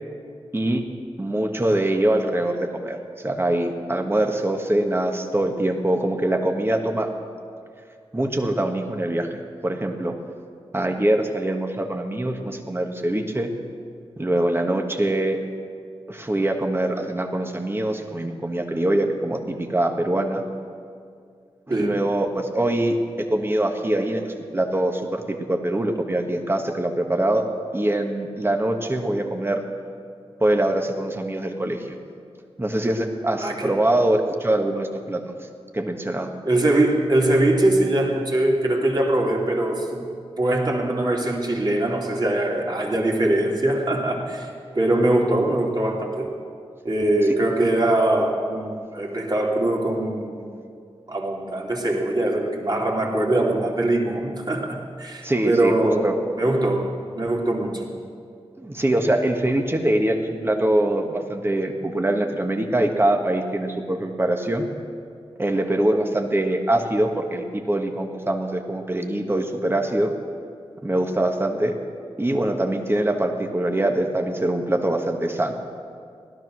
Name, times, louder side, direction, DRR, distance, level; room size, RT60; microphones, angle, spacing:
voice 1, 1.2-3.0 3.2-7.1 8.1-10.1 10.7-13.5 14.2-15.4 16.1-20.4 21.7-29.6 30.4-31.8 32.6-35.3 35.7-36.3 55.2-56.1 58.6-64.7 65.4-70.1 70.8-71.7 72.2-75.5, right 1 dB, 20° right, 3 dB, 1.5 m, -23 dB
voice 2, 33.3-33.8 36.4-40.1 40.4-44.5 44.7-46.4 46.8-50.6 51.1-56.1 56.4-57.9, right 1 dB, 45° right, -1 dB, 2.7 m, -22 dB
16.5 x 12.5 x 6.3 m, 2.2 s
cardioid pair, 60°, 10 cm